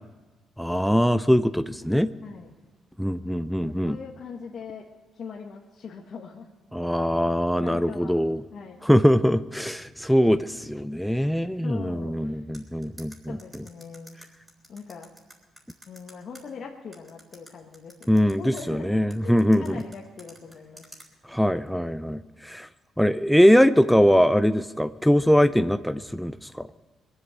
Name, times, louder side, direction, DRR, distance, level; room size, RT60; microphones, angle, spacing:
voice 1, 0.6-2.1 3.0-4.0 6.7-8.4 8.8-13.4 18.1-19.8 21.3-22.7 23.0-26.7, equal, ahead, 11 dB, 0.4 m, -22 dB
voice 2, 3.6-4.8 5.1-6.5 7.2-7.3 7.6-8.2 8.5-8.8 11.6-12.4 13.3-14.2 14.7-15.1 15.9-18.1 18.4-20.8, left 5 dB, 55° left, -1 dB, 1.4 m, -41 dB
sound 1, 12.5-16.4 16.9-18.6 19.1-21.1, right 1 dB, 20° right, 3.6 m, -48 dB
21.0 x 7.9 x 8.1 m, 1.3 s
cardioid pair, 90°, 0 cm